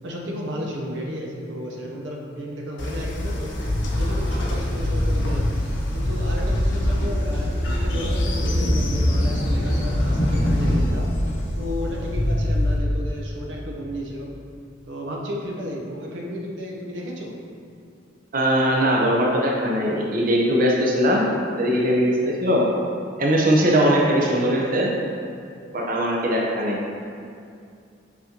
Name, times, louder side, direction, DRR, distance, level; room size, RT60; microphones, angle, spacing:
voice 1, 0.0-3.6 3.9-5.5 5.9-11.1 11.5-14.3 14.8-17.4, equal, 80° right, -2 dB, 0.8 m, -33 dB
Train, 2.8-12.8, left 1 dB, 75° left, 0.8 m, -23 dB
voice 2, 18.3-21.2 21.5-22.7 23.2-24.9 25.7-26.8, equal, 50° right, -3 dB, 0.7 m, -20 dB
6.1 x 5.9 x 2.9 m, 2.4 s
head